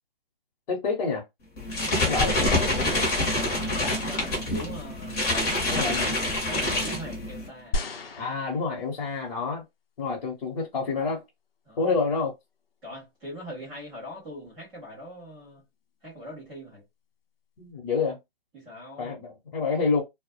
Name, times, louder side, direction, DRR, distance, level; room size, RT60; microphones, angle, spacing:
voice 1, 0.7-1.2 2.0-2.9 5.7-6.1 8.2-9.6 10.0-11.2 11.8-12.3 17.6-18.2 19.0-20.0, left 4 dB, 45° left, 0.9 m, -28 dB
sound 1, 1.6-7.5, left 1 dB, 20° left, 0.7 m, -26 dB
voice 2, 2.4-3.1 3.5-5.2 6.5-7.8 11.6-12.0 12.8-15.6 16.0-16.8 18.5-19.1, equal, 5° right, 0.4 m, -41 dB
sound 2, 7.7-9.2 10.0-10.1, left 2 dB, 75° left, 0.7 m, -33 dB
2.1 x 2.0 x 2.8 m
hypercardioid pair, 150°, 29 cm